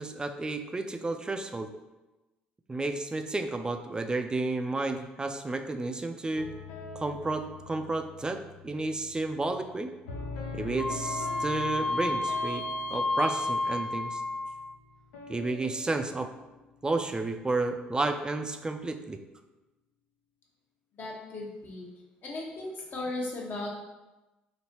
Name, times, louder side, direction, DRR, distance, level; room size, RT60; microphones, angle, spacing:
voice 1, 0.0-1.7 2.7-6.5 7.0-9.9 10.5-12.6 12.9-14.2 15.3-16.3 16.8-19.2, right 2 dB, 20° right, 7 dB, 0.3 m, -31 dB
sound 1, 6.4-17.2, left 3 dB, 80° left, 0.5 m, -43 dB
Wind instrument woodwind instrument, 10.8-14.7, left 2 dB, 20° left, 0.7 m, -31 dB
voice 2, 21.0-21.9 22.2-23.7, left 2 dB, 50° left, -2 dB, 0.9 m, -36 dB
3.1 x 2.8 x 2.8 m, 1.1 s
hypercardioid pair, 60°, 4 cm